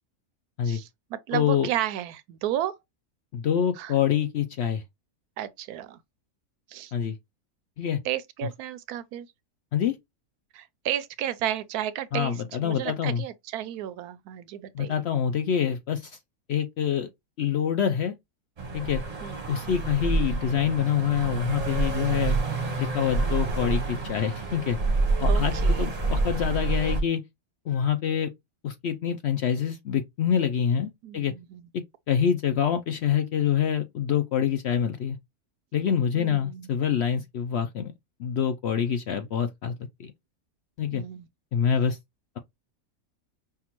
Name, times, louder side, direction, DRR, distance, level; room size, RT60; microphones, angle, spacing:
voice 1, 0.6-2.7 3.8-3.9 5.4-6.0 6.7-6.9 8.0-9.3 10.5-15.0 19.2-19.4 22.1-22.3 25.3-25.8 31.0-31.7 36.1-36.7 40.9-41.3, right 11 dB, 85° right, 1.1 m, -33 dB
voice 2, 1.3-1.7 3.3-4.8 6.9-7.2 7.8-8.0 9.7-10.0 12.1-13.2 14.7-16.2 16.5-17.1 17.4-18.1 18.7-19.0 19.5-22.4 22.8-24.8 25.2-27.2 27.7-28.3 28.6-31.3 32.1-35.2 35.7-37.9 38.2-39.7 40.0-40.1 40.8-41.0 41.5-42.0, left 8 dB, 70° left, 0.6 m, -26 dB
sound 1, 18.6-27.0, right 3 dB, 30° right, 0.8 m, -27 dB
5.7 x 2.3 x 3.0 m
omnidirectional pair, 1.6 m